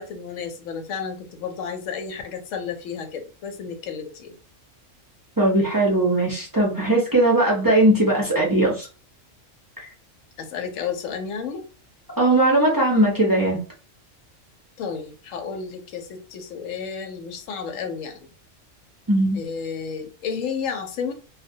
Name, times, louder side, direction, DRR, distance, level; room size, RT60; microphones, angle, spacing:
voice 1, 0.0-4.3 10.4-11.6 14.8-18.3 19.3-21.1, left 6 dB, 85° left, 6 dB, 1.0 m, -32 dB
voice 2, 5.4-8.9 12.2-13.6 19.1-19.4, right 1 dB, 30° right, -3 dB, 0.4 m, -19 dB
2.2 x 2.1 x 2.6 m, 0.35 s
omnidirectional pair, 1.3 m